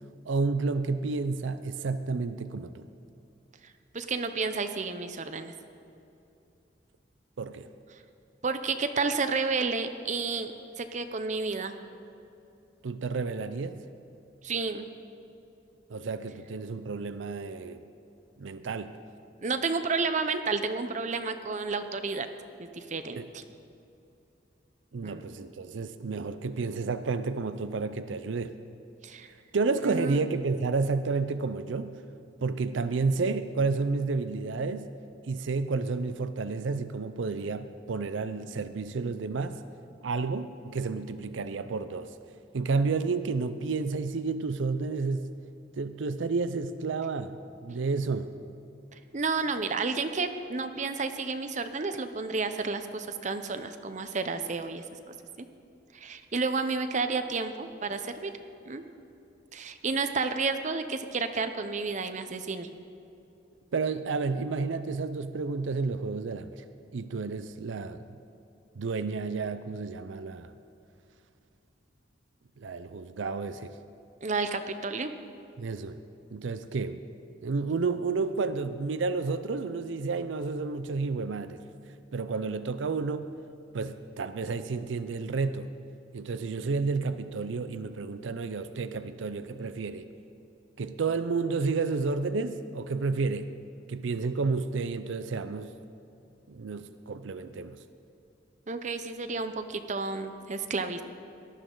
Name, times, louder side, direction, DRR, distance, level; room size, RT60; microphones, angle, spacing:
voice 1, 0.3-2.9 7.4-7.7 12.8-13.9 15.9-17.8 18.4-18.9 23.2-23.3 24.9-28.5 29.5-32.0 32.4-34.9 35.2-39.6 40.0-42.1 42.5-45.3 45.8-48.3 63.7-66.6 66.9-68.1 68.8-70.6 72.6-73.8 75.6-76.0 76.3-77.1 77.4-81.6 82.1-83.3 83.7-85.7 86.1-90.1 90.8-93.5 93.9-95.7 96.5-97.8, right 4 dB, 90° right, 11 dB, 0.5 m, -31 dB
voice 2, 3.9-5.5 8.4-10.5 10.8-11.7 14.4-14.8 19.4-22.3 22.6-23.4 25.0-25.2 29.0-29.3 29.8-30.2 48.9-55.5 55.9-58.3 58.7-58.8 59.5-62.7 74.2-75.1 98.7-101.0, right 4 dB, 40° right, 9 dB, 0.7 m, -31 dB
18.5 x 12.5 x 3.9 m, 2.7 s
head